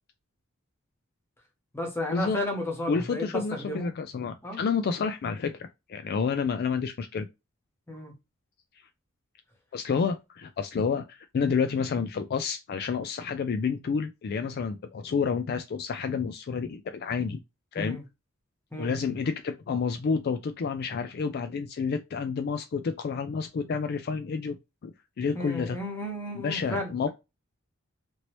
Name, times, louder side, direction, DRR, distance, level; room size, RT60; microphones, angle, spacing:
voice 1, 1.7-3.9 4.4-4.6 7.9-8.1 17.8-18.0 18.7-19.0 25.3-27.1, left 1 dB, 10° left, 1.0 m, -33 dB
voice 2, 2.9-7.3 9.7-17.4 17.7-18.0 18.8-24.6 24.8-25.8 26.3-27.1, left 5 dB, 50° left, 0.3 m, -29 dB
2.9 x 2.7 x 3.0 m
head